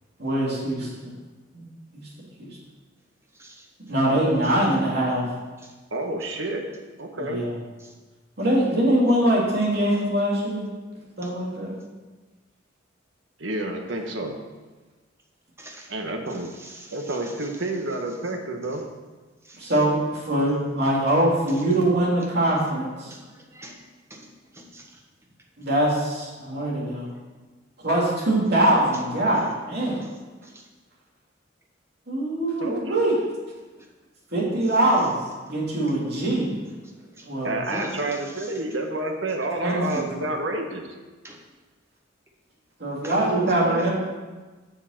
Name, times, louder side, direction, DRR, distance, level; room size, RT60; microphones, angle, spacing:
voice 1, 0.2-1.1 1.5-1.6 1.9-2.1 2.4-2.5 3.9-5.2 7.2-7.5 8.4-10.7 11.2-11.7 19.6-20.0 20.3-23.1 25.6-27.1 27.8-30.0 32.1-33.1 34.3-35.1 35.5-36.5 37.2-37.6 39.6-40.0 42.8-43.9, right 1 dB, 60° right, -5 dB, 3.0 m, -23 dB
voice 2, 3.3-3.7 4.4-4.5 5.6-5.7 6.2-6.3 11.2-11.3 15.6-15.9 16.3-17.7 18.6-18.8 19.4-19.7 23.1-23.8 24.1-24.3 24.5-25.0 25.6-25.7 26.5-27.1 29.8-30.7 36.8-37.3 37.7-38.6 39.8-40.0 41.2-41.4 43.0-43.2 43.4-43.9, right 1 dB, 15° right, 0 dB, 1.2 m, -42 dB
voice 3, 5.9-6.7 7.0-7.4 13.4-14.3 15.9-16.5 16.9-18.9 32.6-33.0 37.4-40.8, right 2 dB, 75° right, 3 dB, 1.2 m, -29 dB
7.4 x 6.7 x 5.8 m, 1.3 s
head